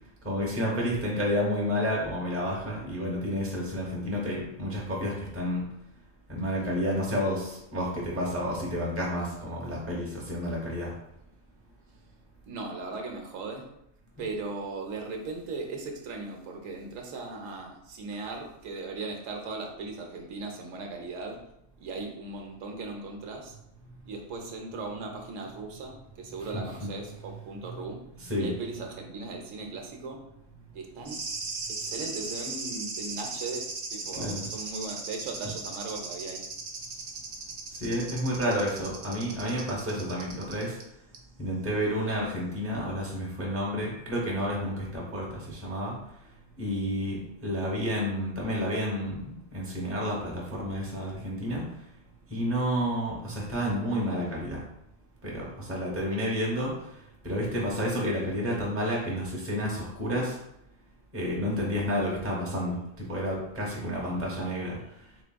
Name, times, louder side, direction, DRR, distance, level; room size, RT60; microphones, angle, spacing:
voice 1, 0.2-5.6 6.3-11.0 26.5-26.9 27.6-27.8 28.2-28.5 34.1-34.5 37.8-40.8 41.4-46.0 46.6-49.2 49.5-51.6 52.3-54.6 55.2-56.8 57.2-60.4 61.1-64.8, equal, 15° right, -3 dB, 0.7 m, -30 dB
voice 2, 12.4-13.6 14.2-21.4 21.8-23.6 24.1-28.0 28.4-30.2 30.7-31.2 31.7-36.4, right 3 dB, 80° right, 2 dB, 1.0 m, -38 dB
sound 1, 31.0-40.8 41.1-41.2, right 3 dB, 55° right, 0.6 m, -37 dB
3.9 x 3.4 x 2.2 m, 0.79 s
omnidirectional pair, 1.3 m